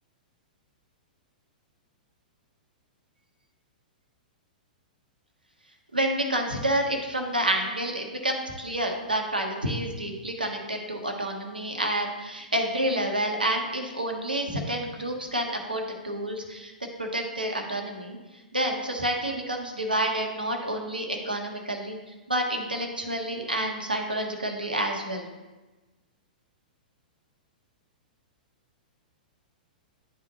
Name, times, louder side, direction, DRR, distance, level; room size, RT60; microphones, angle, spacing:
voice 1, 5.9-16.7 17.0-18.2 18.5-22.0 22.3-25.3, right 1 dB, 85° right, 2 dB, 1.1 m, -29 dB
10.5 x 3.7 x 2.9 m, 1.2 s
figure-of-eight pair, 105°, 5 cm